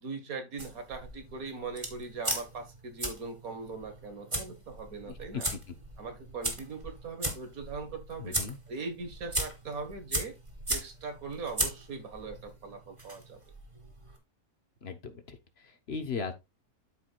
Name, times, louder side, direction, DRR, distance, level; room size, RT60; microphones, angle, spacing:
voice 1, 0.0-5.5 6.0-8.4 8.7-10.4 10.7-13.4, right 4 dB, 70° right, 2.1 m, -40 dB
sound 1, 0.6-14.2, right 1 dB, 20° right, 2.0 m, -38 dB
voice 2, 5.1-5.6 8.2-8.6 14.8-16.3, left 5 dB, 45° left, 1.3 m, -38 dB
13.0 x 4.9 x 2.4 m
omnidirectional pair, 1.6 m